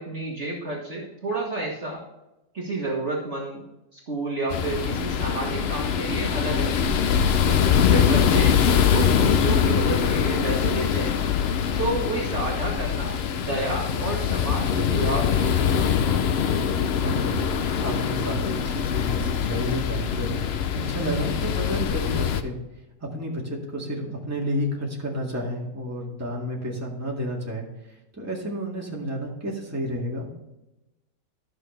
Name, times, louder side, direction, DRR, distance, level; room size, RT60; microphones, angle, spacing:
voice 1, 0.0-2.0 2.5-3.6 3.9-6.9 7.9-11.2 11.8-16.1, right 2 dB, 40° right, -2 dB, 1.6 m, -30 dB
sound 1, 4.5-22.4, left 8 dB, 75° left, 0.5 m, -23 dB
voice 2, 7.7-8.1 17.0-17.4 17.8-20.5 20.9-22.6 23.1-27.7 28.1-30.3, equal, 10° right, -3 dB, 1.9 m, -30 dB
12.5 x 6.6 x 3.3 m, 0.96 s
omnidirectional pair, 1.9 m